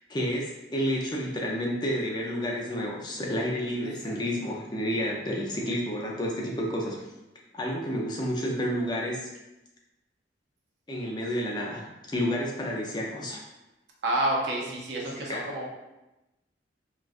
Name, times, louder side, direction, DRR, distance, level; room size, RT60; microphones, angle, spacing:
voice 1, 0.1-7.0 7.5-9.3 10.9-13.4 14.9-15.4, equal, 25° left, -2 dB, 0.5 m, -30 dB
voice 2, 14.0-15.7, right 1 dB, 75° right, -2 dB, 0.6 m, -29 dB
3.8 x 2.3 x 2.4 m, 0.98 s
head